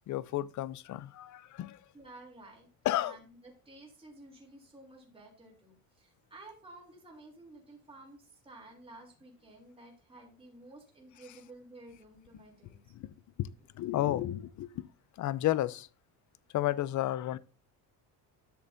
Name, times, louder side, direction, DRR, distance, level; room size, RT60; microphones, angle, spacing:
voice 1, 0.1-1.8 2.8-3.2 12.3-12.4 12.9-14.9 15.2-15.9 16.5-17.4, left 14 dB, 50° left, 0.6 m, -32 dB
voice 2, 1.9-2.7 3.0-12.8, right 2 dB, 15° right, 3.3 m, -53 dB
12.5 x 6.6 x 2.7 m
cardioid pair, 115°, 38 cm